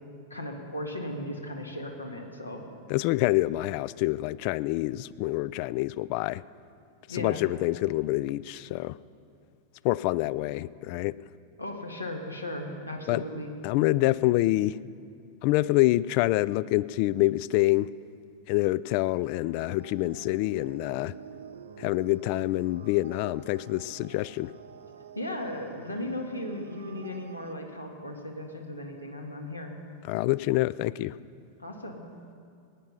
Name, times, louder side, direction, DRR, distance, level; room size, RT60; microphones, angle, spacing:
voice 1, 0.3-2.6 7.1-7.4 11.6-13.5 25.1-29.7 31.6-32.0, left 1 dB, 85° left, 2 dB, 1.7 m, -36 dB
voice 2, 2.9-6.4 7.1-9.0 9.8-11.2 13.1-13.2 13.6-14.8 15.4-17.9 18.5-21.1 21.8-24.5 30.0-31.2, left 18 dB, 45° left, 20 dB, 0.3 m, -26 dB
sound 1, 19.5-27.5, right 7 dB, 65° right, 0.5 m, -48 dB
18.0 x 9.9 x 5.5 m, 2.4 s
figure-of-eight pair, 90°, 0 cm